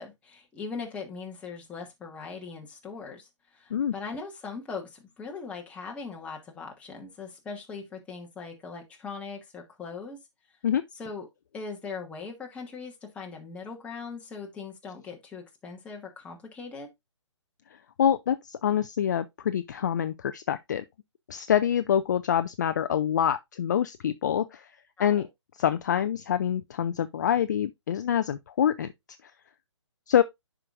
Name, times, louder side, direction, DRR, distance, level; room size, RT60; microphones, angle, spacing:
voice 1, 0.0-3.3 3.5-10.2 10.9-11.3 11.5-16.9 25.0-25.3, left 4 dB, 10° left, 1.3 m, -40 dB
voice 2, 18.0-20.8 21.3-24.7 25.0-25.3 25.6-28.9 29.2-29.3 30.1-30.2, left 9 dB, 35° left, 0.4 m, -26 dB
9.8 x 4.9 x 2.5 m
hypercardioid pair, 150°, 16 cm